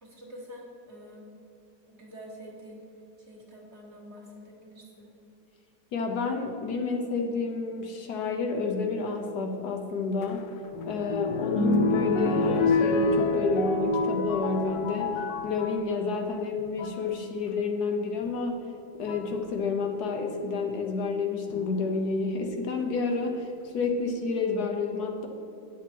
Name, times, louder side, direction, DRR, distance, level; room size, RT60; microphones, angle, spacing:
voice 1, 0.0-1.3 1.9-2.8 3.3-5.1, equal, 40° right, -3 dB, 1.9 m, -46 dB
voice 2, 5.9-10.4 10.9-15.1 15.4-18.6 19.0-25.3, left 4 dB, 70° left, 3 dB, 1.3 m, -29 dB
sound 1, 10.2-15.9 16.6-17.0 18.3-18.4 19.1-19.4 21.5-22.1 22.8-22.9 23.1-23.2, left 2 dB, 90° left, 1.4 m, -27 dB
9.5 x 6.1 x 4.5 m, 2.9 s
omnidirectional pair, 1.9 m